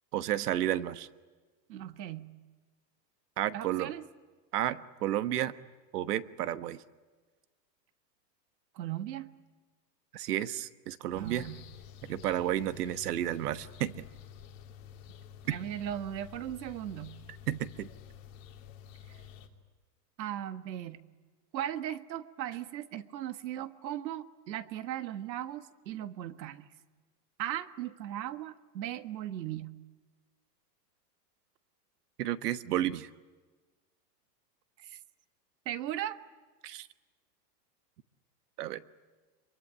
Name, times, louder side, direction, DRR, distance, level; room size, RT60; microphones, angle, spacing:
voice 1, 0.1-1.1 3.4-3.9 4.5-5.5 5.9-6.8 10.1-11.5 12.0-14.0 17.5-17.9 32.2-33.1 36.6-36.9 38.6-38.8, right 12 dB, 65° right, 13 dB, 1.3 m, -32 dB
voice 2, 1.7-2.3 3.5-4.1 8.7-9.3 11.1-11.6 15.5-17.2 19.1-19.2 20.2-21.1 21.5-26.7 27.4-29.7 34.8-35.0 35.6-36.2, right 12 dB, 85° right, 11 dB, 1.6 m, -38 dB
sound 1, 11.1-19.5, left 9 dB, 50° left, 3.1 m, -50 dB
25.5 x 23.0 x 10.0 m, 1.3 s
supercardioid pair, 175°, 50 cm